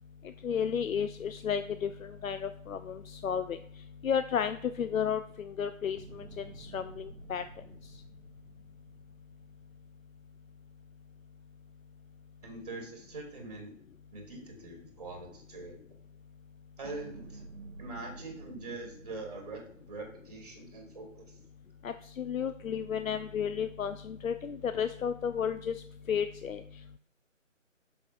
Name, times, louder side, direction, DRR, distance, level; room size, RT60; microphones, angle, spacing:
voice 1, 0.4-3.6 4.0-7.4 21.8-26.6, left 7 dB, 90° left, 10 dB, 0.5 m, -33 dB
sound 1, 6.0-10.3 16.8-20.6, right 3 dB, 70° right, 0.8 m, -51 dB
voice 2, 12.4-13.8 14.1-15.8 16.8-17.5 17.8-21.4, right 3 dB, 30° right, 3 dB, 1.5 m, -43 dB
6.8 x 6.0 x 2.5 m, 0.63 s
figure-of-eight pair, 160°, 40 cm